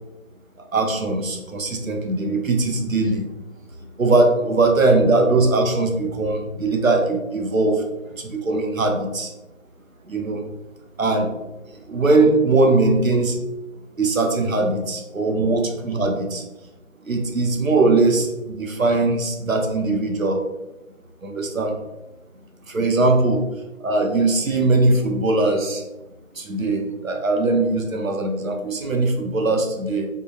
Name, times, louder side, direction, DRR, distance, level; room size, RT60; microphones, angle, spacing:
voice 1, 0.7-3.2 4.0-7.8 8.2-9.3 10.1-10.4 11.0-11.3 11.9-13.4 14.0-16.4 17.0-20.4 21.2-21.7 22.7-23.4 23.8-25.8 26.4-30.1, right 2 dB, 75° right, 3 dB, 0.8 m, -20 dB
3.7 x 2.2 x 2.4 m, 1.0 s
figure-of-eight pair, 170°, 41 cm